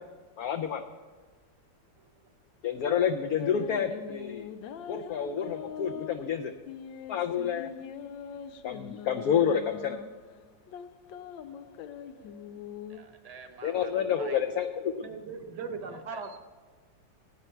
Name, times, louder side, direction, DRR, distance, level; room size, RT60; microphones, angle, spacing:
voice 1, 0.4-0.8 2.6-4.5 4.9-6.5 7.1-7.7 8.6-10.0 13.6-15.1, left 8 dB, 70° left, 6 dB, 0.9 m, -29 dB
voice 2, 2.0-2.3 12.9-14.4 15.9-16.2, right 5 dB, 35° right, 5 dB, 0.7 m, -50 dB
sound 1, 2.6-13.0, left 8 dB, 90° left, 1.4 m, -43 dB
voice 3, 15.0-16.4, right 5 dB, 65° right, 7 dB, 1.6 m, -38 dB
16.5 x 9.2 x 4.4 m, 1.4 s
omnidirectional pair, 2.0 m